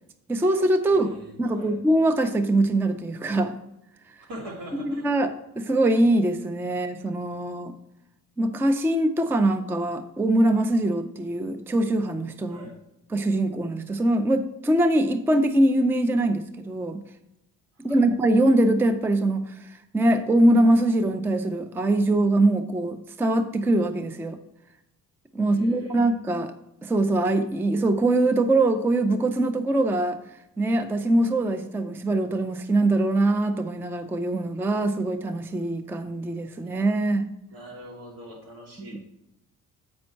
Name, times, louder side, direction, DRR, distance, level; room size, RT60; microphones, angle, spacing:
voice 1, 0.3-1.1 1.4-3.5 4.8-7.7 8.4-12.7 13.1-17.0 17.8-24.4 25.3-26.5 26.8-30.2 30.6-37.3 38.9-39.0, right 1 dB, 5° right, 9 dB, 0.4 m, -23 dB
voice 2, 0.8-1.8 4.3-5.1 12.5-12.8 17.8-18.1 25.4-26.1 37.5-39.0, equal, 75° right, -1 dB, 2.7 m, -42 dB
8.6 x 5.3 x 4.4 m, 0.86 s
cardioid pair, 130°, 35 cm